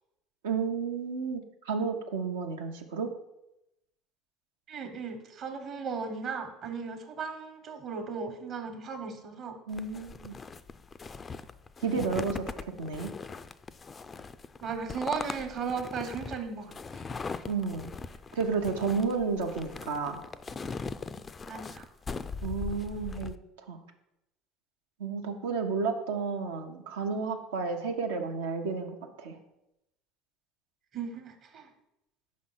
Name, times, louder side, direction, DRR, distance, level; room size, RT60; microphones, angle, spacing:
voice 1, 0.4-3.1 9.7-10.4 11.8-12.4 12.8-13.1 17.4-17.9 18.3-20.2 22.4-23.3 23.7-23.8 25.0-29.4, right 5 dB, 80° right, 3 dB, 0.7 m, -31 dB
voice 2, 4.7-9.6 14.6-17.0 21.5-21.9 30.9-31.7, right 5 dB, 50° right, 6 dB, 1.1 m, -36 dB
sound 1, 9.7-23.4, left 4 dB, 30° left, 0.3 m, -40 dB
5.3 x 4.2 x 5.6 m, 0.88 s
hypercardioid pair, 75°, 0 cm